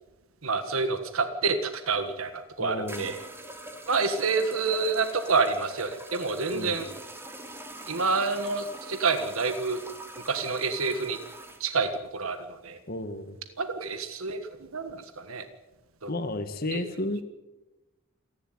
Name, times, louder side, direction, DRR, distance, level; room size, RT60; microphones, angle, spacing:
voice 1, 0.4-3.2 3.9-6.8 7.9-9.8 10.3-11.2 11.6-12.8 13.6-15.4 16.0-16.1, right 4 dB, 90° right, 9 dB, 1.5 m, -28 dB
sound 1, 2.1-2.2 2.9-11.6, right 1 dB, 10° right, 2.3 m, -43 dB
voice 2, 2.6-3.1 6.5-6.8 12.9-13.4 16.1-17.2, left 1 dB, 45° left, 9 dB, 1.9 m, -32 dB
28.5 x 11.5 x 9.3 m, 1.0 s
head